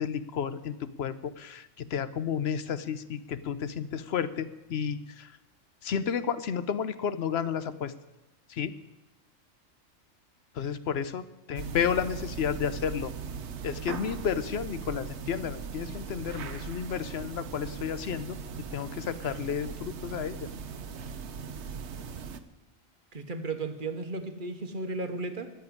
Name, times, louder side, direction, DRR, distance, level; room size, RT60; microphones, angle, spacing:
voice 1, 0.0-5.3 5.8-7.9 8.5-8.7 10.6-13.1 13.6-18.4 18.7-20.5, left 7 dB, 60° left, 14 dB, 0.8 m, -32 dB
sound 1, 11.6-22.4, right 6 dB, 65° right, 1.1 m, -39 dB
voice 2, 23.1-25.5, right 3 dB, 40° right, 8 dB, 1.2 m, -34 dB
14.0 x 7.0 x 9.5 m, 1.0 s
omnidirectional pair, 1.3 m